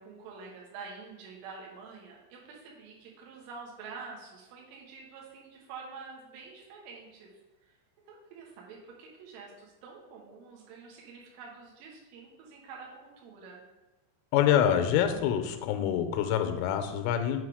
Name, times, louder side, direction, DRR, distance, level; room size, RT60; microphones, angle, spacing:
voice 1, 0.0-7.3 7.6-7.7 8.1-13.6, right 5 dB, 75° right, -2 dB, 3.7 m, -47 dB
voice 2, 14.3-17.4, left 9 dB, 90° left, 8 dB, 3.2 m, -26 dB
8.3 x 4.1 x 4.9 m, 1.1 s
omnidirectional pair, 5.7 m